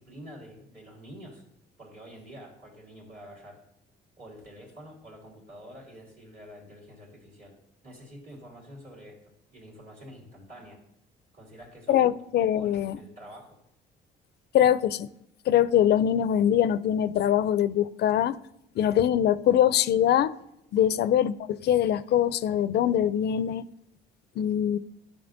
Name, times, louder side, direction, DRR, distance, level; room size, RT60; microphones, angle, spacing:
voice 1, 0.0-1.4 1.8-3.6 4.2-7.6 7.8-10.8 11.3-12.1 12.4-13.6 20.8-21.0, equal, 45° right, 2.9 m, -47 dB
voice 2, 11.9-13.0 14.5-15.1 15.5-18.4 18.8-20.4 20.7-23.6 24.4-24.8, left 10 dB, 60° left, 0.4 m, -23 dB
10.5 x 5.5 x 2.6 m
supercardioid pair, 75°, 20 cm